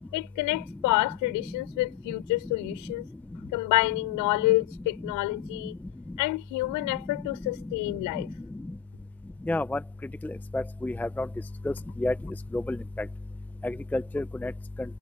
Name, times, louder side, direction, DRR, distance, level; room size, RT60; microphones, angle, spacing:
voice 1, 0.1-3.1 3.5-5.7 6.2-8.3, left 21 dB, 55° left, 5.0 m, -28 dB
voice 2, 9.5-9.8 10.5-11.3 11.7-11.8 12.0-12.1 12.5-12.8 13.6-14.5, left 2 dB, 5° left, 0.8 m, -29 dB
supercardioid pair, 120°, 37 cm